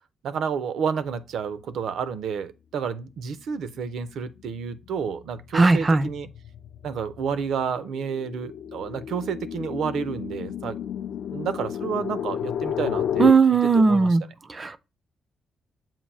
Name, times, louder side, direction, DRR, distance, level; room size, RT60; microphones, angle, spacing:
voice 1, 0.2-6.3 6.8-10.8 11.3-13.3 13.7-14.2, right 6 dB, 80° right, 0.6 m, -30 dB
sound 1, 3.6-4.0 4.4-13.3, left 9 dB, 70° left, 0.4 m, -32 dB
voice 2, 5.5-6.1 13.2-14.2 14.6-14.8, right 4 dB, 25° right, 0.4 m, -18 dB
7.3 x 2.6 x 5.4 m
wide cardioid pair, 160°, 0 cm